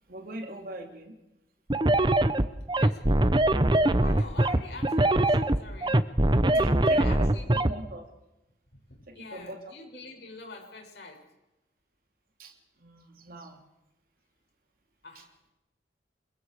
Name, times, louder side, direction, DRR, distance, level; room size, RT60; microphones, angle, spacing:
voice 1, 0.1-1.2 6.4-8.1 9.1-9.6 12.4-12.5 12.8-13.6 15.1-15.2, right 1 dB, 55° right, 3 dB, 3.1 m, -41 dB
sound 1, 1.7-7.7, right 1 dB, 25° right, 0.9 m, -22 dB
voice 2, 3.7-6.0 6.8-7.5 9.1-11.2 15.0-15.3, left 3 dB, 70° left, 1 dB, 6.9 m, -44 dB
29.0 x 23.0 x 5.0 m, 0.94 s
head